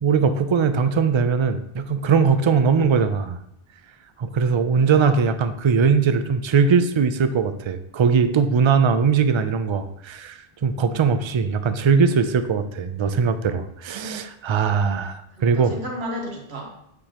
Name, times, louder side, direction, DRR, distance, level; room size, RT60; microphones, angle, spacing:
voice 1, 0.0-3.4 4.2-15.8, right 5 dB, 50° right, 10 dB, 0.3 m, -20 dB
voice 2, 4.7-5.2 15.4-16.8, equal, 85° right, 0 dB, 1.5 m, -33 dB
8.3 x 4.9 x 2.9 m, 0.76 s
omnidirectional pair, 1.0 m